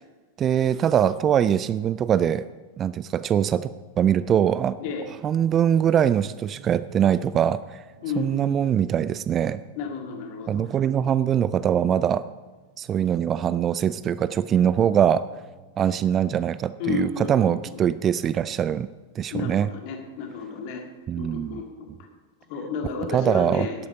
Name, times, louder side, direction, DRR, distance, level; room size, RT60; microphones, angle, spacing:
voice 1, 0.4-2.5 2.8-4.8 5.2-7.8 8.2-9.6 10.5-12.3 12.8-15.3 15.8-18.9 19.2-19.7 21.1-21.6 23.1-23.7, right 9 dB, 25° right, 15 dB, 0.3 m, -22 dB
sound 1, 3.6-19.3 19.8-19.9, right 3 dB, 75° right, 3.0 m, -52 dB
voice 2, 8.0-8.7 9.8-10.6 16.8-17.5 19.3-20.8 21.2-21.9 22.5-23.7, left 5 dB, 45° left, 3 dB, 2.0 m, -32 dB
12.0 x 8.4 x 5.4 m, 1.3 s
figure-of-eight pair, 90°, 0 cm